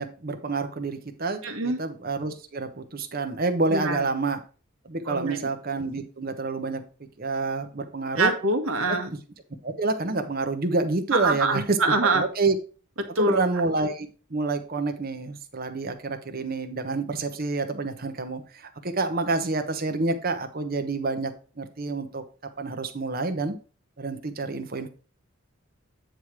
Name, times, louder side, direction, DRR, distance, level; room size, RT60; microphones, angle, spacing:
voice 1, 0.0-4.4 4.8-6.8 7.2-8.3 9.1-9.2 9.6-12.6 13.2-22.2 22.6-23.5 24.0-24.9, right 3 dB, 45° right, 7 dB, 1.0 m, -28 dB
voice 2, 1.4-1.8 3.7-4.0 5.0-5.5 8.2-9.1 11.1-12.3 13.0-13.4, right 2 dB, 80° right, 5 dB, 1.5 m, -25 dB
9.0 x 3.3 x 6.0 m, 0.36 s
head